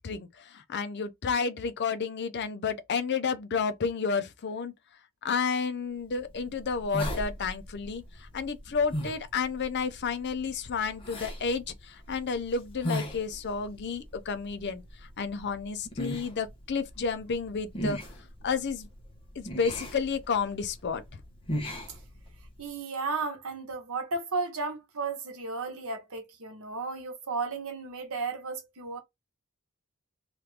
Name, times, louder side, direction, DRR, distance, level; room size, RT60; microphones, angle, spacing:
voice 1, 0.0-4.7 5.2-14.8 15.2-18.0 18.4-18.9 19.4-21.0, left 5 dB, 55° left, 0.5 m, -31 dB
sound 1, 6.0-22.6, equal, 25° left, 0.8 m, -39 dB
voice 2, 22.6-29.0, right 4 dB, 85° right, 1.0 m, -34 dB
2.9 x 2.5 x 3.3 m
head